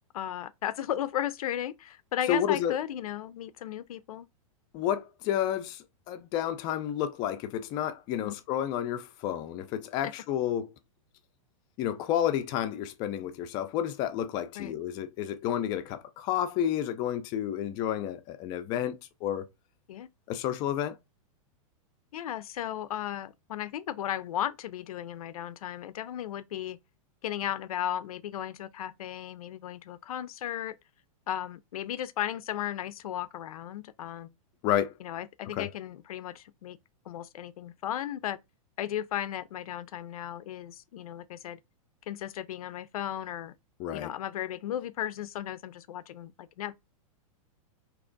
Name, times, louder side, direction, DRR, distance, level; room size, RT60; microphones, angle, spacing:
voice 1, 0.1-4.3 8.2-8.3 10.0-10.1 14.6-14.7 19.9-20.1 22.1-26.8 27.2-30.8 31.3-34.3 35.0-36.8 37.1-38.4 38.8-41.6 42.1-43.5 43.9-46.7, left 11 dB, 90° left, 0.5 m, -35 dB
voice 2, 2.3-2.7 4.7-10.7 11.8-19.4 20.3-21.0 34.6-34.9 35.5-35.7 43.8-44.1, left 10 dB, 25° left, 0.4 m, -30 dB
3.4 x 2.9 x 3.8 m
supercardioid pair, 165°, 18 cm